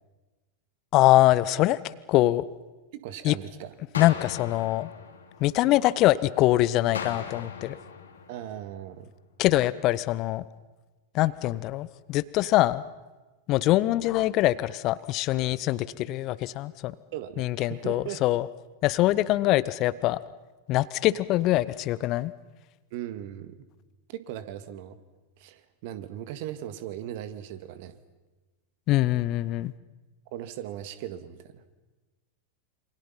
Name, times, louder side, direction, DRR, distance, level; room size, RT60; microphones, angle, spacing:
voice 1, 0.9-1.8 2.1-2.4 3.2-3.3 4.0-4.9 5.4-7.8 9.4-10.4 11.1-12.8 13.5-16.9 17.4-18.5 18.8-20.2 20.7-22.3 28.9-29.7, left 16 dB, 40° left, 18 dB, 0.8 m, -23 dB
voice 2, 2.9-3.7 8.3-9.1 17.1-18.2 22.9-23.6 24.1-25.0 25.4-27.9 30.3-31.6, right 11 dB, 50° right, 12 dB, 1.8 m, -38 dB
sound 1, 3.9-6.0 6.9-9.0, left 6 dB, 70° left, 2.9 m, -39 dB
28.0 x 25.5 x 5.8 m, 1.2 s
figure-of-eight pair, 90°, 0 cm